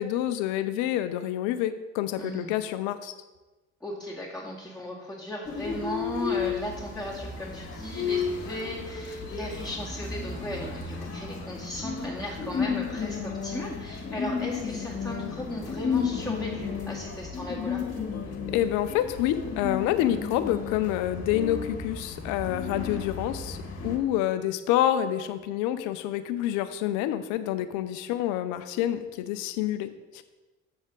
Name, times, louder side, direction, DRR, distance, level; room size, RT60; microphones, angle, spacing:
voice 1, 0.0-3.1 18.5-23.6 23.8-30.2, left 12 dB, 75° left, 11 dB, 0.6 m, -28 dB
voice 2, 2.2-2.5 3.8-17.8, left 1 dB, 5° left, -8 dB, 2.2 m, -36 dB
sound 1, 5.4-24.0, left 5 dB, 55° left, 2.0 m, -33 dB
7.1 x 6.8 x 3.9 m, 1.1 s
hypercardioid pair, 50°, 30 cm